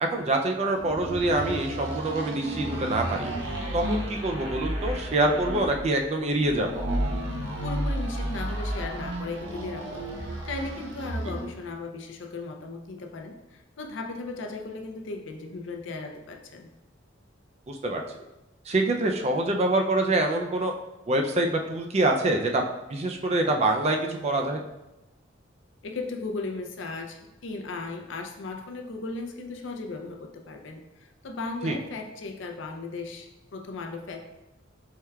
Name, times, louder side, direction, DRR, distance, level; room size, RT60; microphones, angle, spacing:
voice 1, 0.0-3.3 3.7-6.8 17.7-18.0 18.7-20.7 21.1-24.6 31.6-31.8, right 2 dB, 35° right, 3 dB, 0.4 m, -25 dB
sound 1, 0.8-11.6, right 1 dB, 80° right, 1.0 m, -32 dB
voice 2, 7.6-16.7 25.8-34.2, left 3 dB, 75° left, 3 dB, 0.5 m, -36 dB
4.6 x 3.3 x 2.3 m, 0.97 s
head